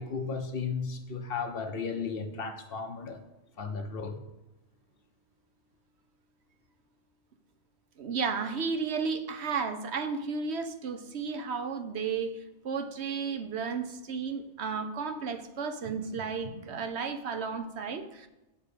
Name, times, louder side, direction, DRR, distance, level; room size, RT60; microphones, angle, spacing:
voice 1, 0.0-3.2 3.6-4.2, left 5 dB, 55° left, 0.9 m, -35 dB
voice 2, 8.0-18.3, right 5 dB, 65° right, 1.0 m, -33 dB
7.1 x 5.2 x 6.8 m
omnidirectional pair, 1.2 m